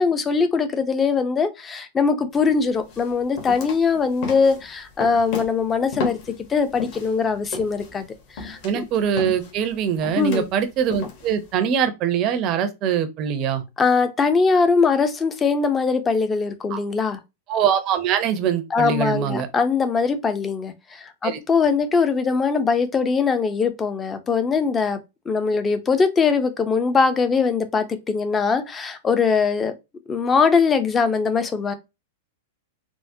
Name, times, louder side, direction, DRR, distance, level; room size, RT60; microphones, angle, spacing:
voice 1, 0.0-6.2 6.5-8.1 8.4-8.8 10.2-10.5 13.8-17.2 18.7-25.0 25.3-29.7 30.1-31.7, left 5 dB, 15° left, 0.4 m, -21 dB
sound 1, 2.3-2.5 2.9-7.1 7.5-11.5, left 4 dB, 50° left, 1.0 m, -33 dB
voice 2, 8.6-13.6 16.7-16.8 17.5-19.5 21.2-21.4, right 8 dB, 35° right, 0.5 m, -23 dB
3.5 x 2.0 x 2.6 m
supercardioid pair, 145°, 0 cm